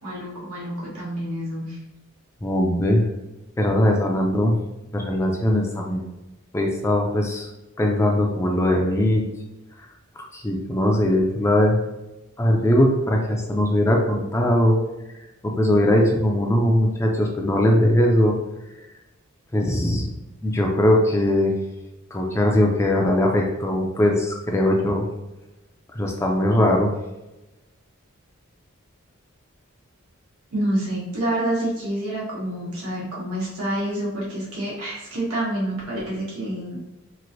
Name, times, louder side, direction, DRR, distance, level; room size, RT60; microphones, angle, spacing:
voice 1, 0.0-1.8 30.5-36.8, right 1 dB, 90° right, -5 dB, 1.2 m, -28 dB
voice 2, 2.4-3.0 3.6-4.6 4.9-6.1 6.5-7.5 7.8-9.2 10.3-11.8 12.4-14.8 15.4-18.3 19.5-20.0 20.4-21.5 22.1-25.1 25.9-26.9, left 1 dB, 15° left, 0 dB, 0.3 m, -20 dB
3.1 x 2.5 x 2.6 m, 1.0 s
head